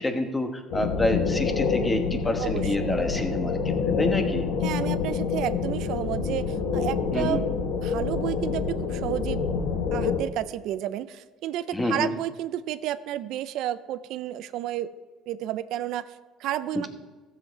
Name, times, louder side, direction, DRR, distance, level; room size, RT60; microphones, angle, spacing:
voice 1, 0.0-4.4 7.1-7.4 11.7-12.1, left 1 dB, 15° left, 5 dB, 1.2 m, -28 dB
sound 1, 0.7-10.2, left 5 dB, 80° left, 1.4 m, -27 dB
voice 2, 2.4-2.9 4.6-7.5 7.8-9.4 9.9-14.9 15.3-16.9, right 12 dB, 70° right, 14 dB, 0.5 m, -31 dB
14.5 x 7.6 x 4.7 m, 1.3 s
cardioid pair, 120°, 0 cm